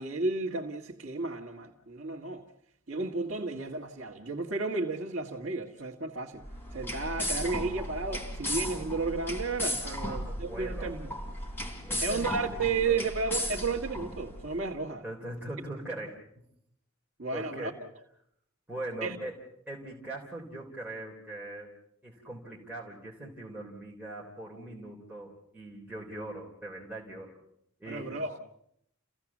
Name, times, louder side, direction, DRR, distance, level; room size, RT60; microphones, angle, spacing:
voice 1, 0.0-2.4 2.9-6.4 6.7-11.2 12.0-15.0 17.2-17.7 19.0-19.2 27.9-28.4, right 4 dB, 60° right, 1.7 m, -33 dB
sound 1, 6.4-14.5, left 1 dB, 10° left, 3.4 m, -35 dB
voice 2, 9.8-11.0 11.8-13.0 15.0-16.2 17.3-17.8 18.7-19.4 19.7-21.7 22.0-27.3 27.8-28.3, right 1 dB, 10° right, 3.6 m, -41 dB
29.5 x 16.5 x 7.3 m
head